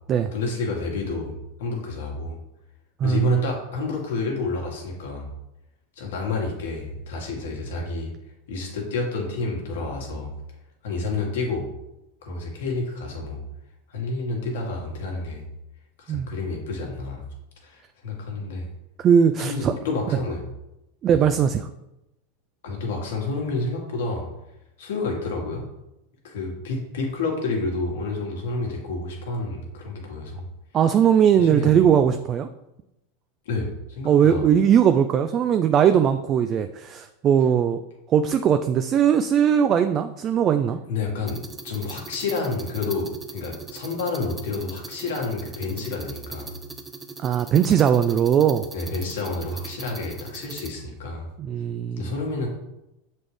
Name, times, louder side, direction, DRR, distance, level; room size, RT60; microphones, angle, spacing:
voice 1, 0.3-2.4 3.0-5.3 6.0-8.1 8.5-10.3 10.8-11.7 12.2-13.4 13.9-15.4 16.0-17.2 17.6-18.7 19.4-20.4 21.1-21.2 22.6-24.3 24.8-25.6 26.2-30.5 31.4-31.7 33.4-34.5 40.9-46.5 48.7-51.3 52.0-52.5, left 3 dB, 75° left, -1 dB, 1.6 m, -29 dB
voice 2, 3.0-3.4 16.1-16.3 19.0-19.7 21.0-21.6 30.7-32.5 34.1-37.8 38.1-40.8 47.2-48.6 51.4-52.1, right 8 dB, 35° right, 8 dB, 0.3 m, -19 dB
sound 1, 41.3-50.7, right 4 dB, 20° right, 0.7 m, -40 dB
7.1 x 4.1 x 3.3 m, 0.91 s
hypercardioid pair, 100°, 0 cm